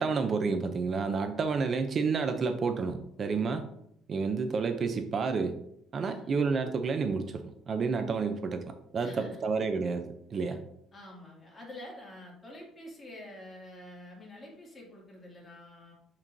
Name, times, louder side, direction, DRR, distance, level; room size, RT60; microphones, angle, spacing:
voice 1, 0.0-3.6 4.1-5.6 5.9-8.6 8.9-10.6, right 4 dB, 40° right, 8 dB, 0.5 m, -30 dB
voice 2, 6.0-6.4 9.0-9.6 10.4-10.6 10.9-15.9, left 1 dB, 25° left, -2 dB, 2.3 m, -48 dB
8.4 x 4.5 x 2.6 m, 0.74 s
cardioid pair, 115°, 0 cm